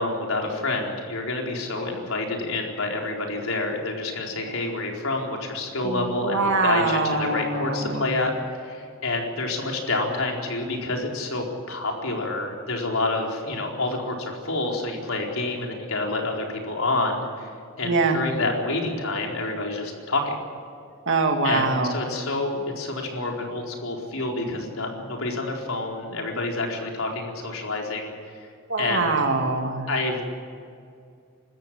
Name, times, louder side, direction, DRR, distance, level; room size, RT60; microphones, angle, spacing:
voice 1, 0.0-8.3 8.6-17.5 17.8-20.4 21.4-28.1 28.8-29.1 29.9-30.3, left 2 dB, 85° left, 0 dB, 4.4 m, -28 dB
voice 2, 5.8-8.2 17.8-18.2 21.1-22.0 28.7-29.9, right 3 dB, 65° right, 3 dB, 2.3 m, -24 dB
25.5 x 14.0 x 8.9 m, 2.3 s
head